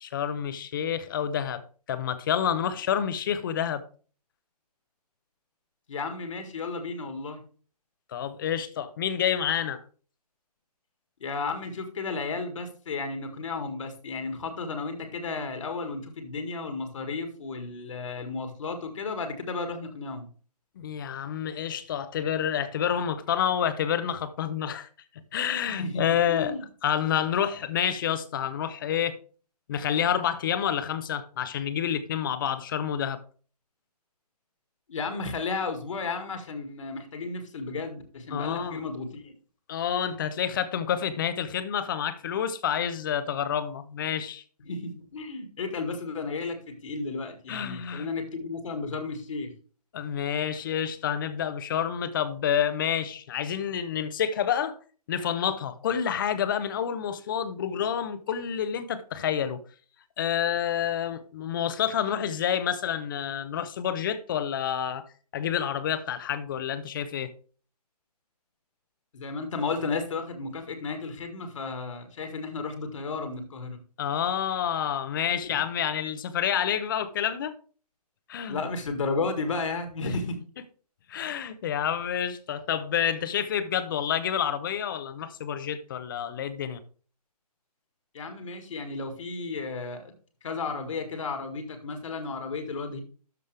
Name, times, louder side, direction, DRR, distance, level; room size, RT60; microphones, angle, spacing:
voice 1, 0.0-1.6 1.9-3.8 8.1-9.8 20.8-24.9 25.1-26.6 26.8-29.2 29.7-33.2 38.3-38.8 39.7-44.4 47.5-48.1 49.9-54.8 55.1-59.6 60.2-65.0 65.3-67.3 74.0-77.6 78.3-78.6 80.0-80.1 81.1-86.8, left 9 dB, 30° left, 0.8 m, -28 dB
voice 2, 5.9-7.4 11.2-20.3 25.7-26.6 34.9-39.3 44.7-49.5 69.1-73.8 75.4-75.6 78.5-80.4 88.1-90.1 90.4-93.0, left 4 dB, 50° left, 1.9 m, -33 dB
12.5 x 5.3 x 3.3 m
figure-of-eight pair, 150°, 21 cm